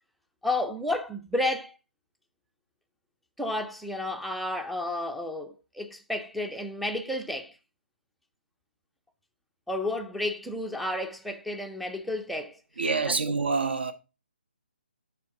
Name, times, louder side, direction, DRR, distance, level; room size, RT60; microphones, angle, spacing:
voice 1, 0.4-1.7 3.4-7.5 9.7-12.6 13.1-13.3, left 1 dB, ahead, 0.4 m, -31 dB
voice 2, 12.8-13.9, right 4 dB, 65° right, 1.2 m, -26 dB
7.5 x 5.7 x 3.6 m
figure-of-eight pair, 140°, 6 cm